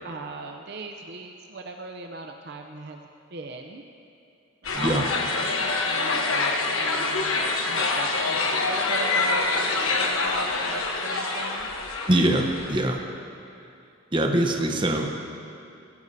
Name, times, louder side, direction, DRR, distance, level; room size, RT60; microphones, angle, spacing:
voice 1, 0.0-3.0 3.3-3.8 4.7-11.7, right 3 dB, 50° right, 3 dB, 0.6 m, -39 dB
sound 1, 4.6-12.8, left 3 dB, 90° left, 1.2 m, -26 dB
voice 2, 4.7-5.1 12.1-13.0 14.1-15.1, right 1 dB, 25° right, 2 dB, 0.9 m, -23 dB
17.0 x 14.5 x 2.8 m, 2.6 s
head